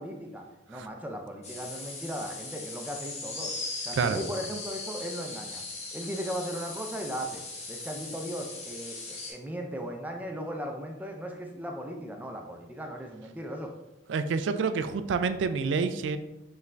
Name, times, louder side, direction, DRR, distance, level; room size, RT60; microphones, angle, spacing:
voice 1, 0.0-3.5 3.8-5.6 5.9-7.4 7.7-13.7, equal, 10° right, 2 dB, 0.4 m, -37 dB
sound 1, 1.4-9.3, left 3 dB, 35° left, 0.9 m, -39 dB
voice 2, 14.1-16.2, right 5 dB, 80° right, 10 dB, 0.3 m, -28 dB
5.5 x 3.1 x 2.5 m, 0.96 s
head